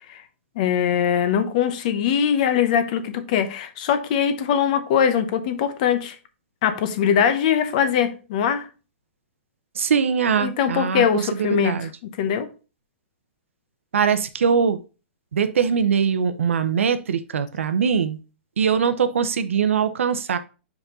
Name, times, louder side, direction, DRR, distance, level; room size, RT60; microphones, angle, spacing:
voice 1, 0.6-6.2 6.6-8.7 10.4-11.7 12.0-12.5, left 8 dB, 35° left, 0.8 m, -21 dB
voice 2, 9.7-11.9 13.9-14.8 15.3-18.2 18.6-20.4, right 6 dB, 85° right, 0.8 m, -22 dB
5.2 x 4.9 x 3.8 m
hypercardioid pair, 165°, 7 cm